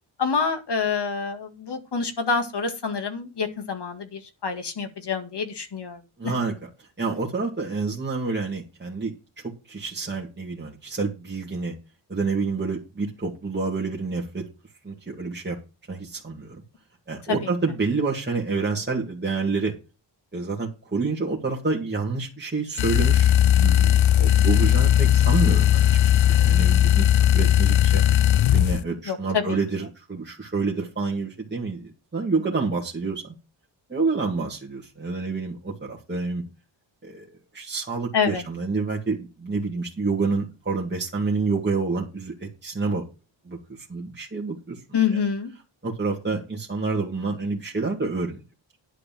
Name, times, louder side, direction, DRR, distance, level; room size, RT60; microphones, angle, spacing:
voice 1, 0.2-6.3 17.3-17.4 29.1-29.6 38.1-38.4 44.9-45.5, left 6 dB, 60° left, 7 dB, 2.1 m, -27 dB
voice 2, 6.2-9.1 9.7-11.7 12.1-14.4 14.8-15.6 15.9-16.6 17.1-19.7 20.3-23.3 23.6-28.0 28.5-33.3 33.9-36.4 37.0-37.3 37.5-43.0 43.5-43.6 43.9-44.8 45.1-45.2 45.8-48.4, right 4 dB, 25° right, -2 dB, 2.3 m, -28 dB
sound 1, 22.8-28.8, left 11 dB, 85° left, 0.6 m, -18 dB
10.5 x 4.9 x 7.6 m, 0.29 s
wide cardioid pair, 125°, 45 cm